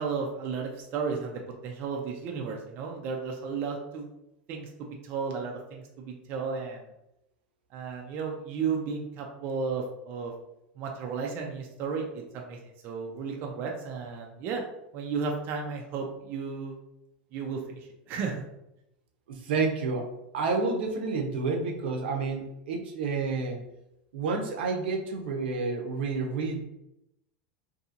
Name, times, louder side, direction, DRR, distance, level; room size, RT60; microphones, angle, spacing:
voice 1, 0.0-4.1 4.5-6.8 7.7-10.3 10.8-12.6 12.8-14.6 14.9-16.8 17.3-17.8 18.1-18.4, right 5 dB, 35° right, 1 dB, 0.4 m, -33 dB
voice 2, 19.3-20.1 20.3-23.6 24.1-26.6, right 4 dB, 85° right, 2 dB, 0.6 m, -29 dB
2.7 x 2.6 x 2.4 m, 0.85 s
supercardioid pair, 160°, 5 cm